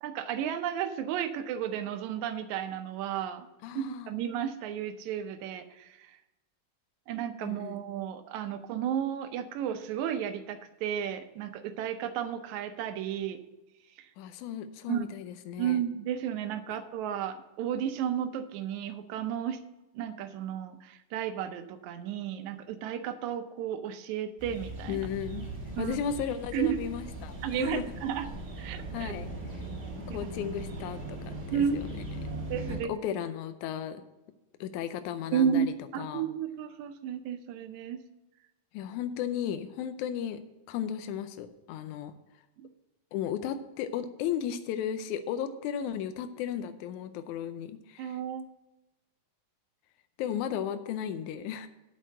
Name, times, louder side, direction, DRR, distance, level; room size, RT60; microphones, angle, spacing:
voice 1, 0.0-3.5 3.8-6.2 7.1-13.4 14.9-15.0 15.6-19.6 20.0-25.1 25.8-26.0 26.5-26.8 27.4-28.3 28.6-29.1 31.5-31.8 32.5-32.9 35.3-38.0 42.6-42.7 48.0-48.4, right 9 dB, 75° right, 9 dB, 2.0 m, -33 dB
voice 2, 3.6-4.1 7.4-7.9 14.2-15.8 24.9-25.5 25.8-27.8 28.9-29.3 30.1-31.9 32.7-34.0 34.6-36.3 38.7-40.4 40.7-42.1 43.1-48.2 50.2-51.7, left 9 dB, 80° left, 10 dB, 2.0 m, -35 dB
sound 1, 24.4-32.8, right 2 dB, 20° right, 1.7 m, -39 dB
8.0 x 6.6 x 7.6 m, 1.0 s
omnidirectional pair, 3.6 m